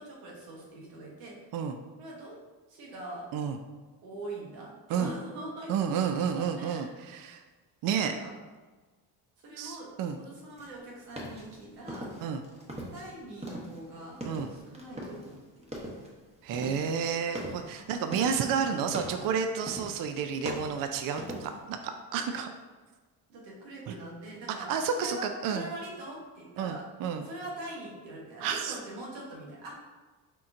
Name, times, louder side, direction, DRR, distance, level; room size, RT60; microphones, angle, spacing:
voice 1, 0.0-1.3 2.0-2.4 2.7-3.3 4.0-5.9 6.3-7.0 8.2-8.3 9.4-9.9 10.2-12.1 12.9-14.2 14.5-15.7 17.8-17.9 18.4-19.4 22.3-22.4 23.3-26.8 27.2-29.7, right 1 dB, 85° right, -3 dB, 1.2 m, -43 dB
voice 2, 5.7-7.4 7.8-8.2 9.6-10.2 12.2-12.4 14.2-14.5 16.4-22.5 23.9-24.0 24.7-25.2 25.4-25.7 26.6-27.3 28.4-28.8, right 7 dB, 45° right, 7 dB, 0.4 m, -31 dB
sound 1, 10.6-13.1 13.4-15.4 15.6-16.1 16.5-18.5 18.9-19.3 19.7-20.1 20.3-21.6, right 1 dB, 15° right, 1.0 m, -40 dB
4.4 x 3.7 x 2.5 m, 1.3 s
supercardioid pair, 65°, 47 cm